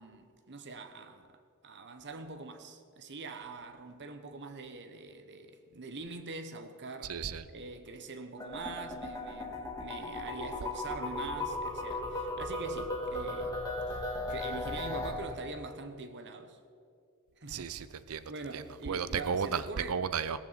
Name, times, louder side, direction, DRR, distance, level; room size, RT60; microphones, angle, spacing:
voice 1, 0.0-7.2 7.5-14.0 14.3-16.6 17.4-17.8 18.3-20.0, right 3 dB, 50° right, 1.1 m, -44 dB
voice 2, 7.1-7.4 17.5-20.5, right 6 dB, 70° right, 0.6 m, -34 dB
sound 1, 8.4-15.1, left 2 dB, 15° left, 2.0 m, -36 dB
17.0 x 14.5 x 4.2 m
head